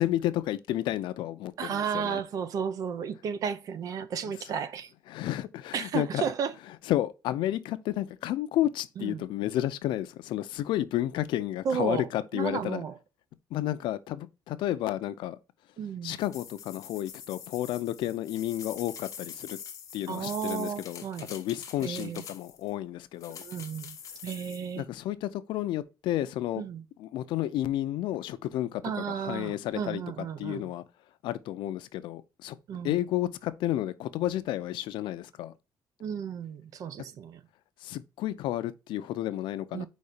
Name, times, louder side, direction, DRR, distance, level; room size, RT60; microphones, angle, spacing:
voice 1, 0.0-2.2 5.1-6.3 6.9-12.8 13.5-15.4 16.0-19.6 19.9-21.0 21.3-23.4 24.8-26.6 27.0-28.8 29.1-30.0 30.4-30.8 31.2-32.6 32.8-35.5 37.8-39.9, left 13 dB, 80° left, 0.6 m, -31 dB
voice 2, 1.6-4.9 5.7-6.5 9.0-9.2 11.6-12.0 12.3-13.0 15.8-16.2 20.1-21.3 21.8-22.2 23.4-24.0 24.2-24.9 26.6-26.8 28.8-30.6 32.7-32.9 36.0-37.4 39.7-39.9, right 7 dB, 45° right, 0.5 m, -33 dB
sound 1, 16.2-22.7 23.2-24.7, left 7 dB, 40° left, 1.0 m, -45 dB
4.7 x 4.2 x 5.0 m
cardioid pair, 175°, 8 cm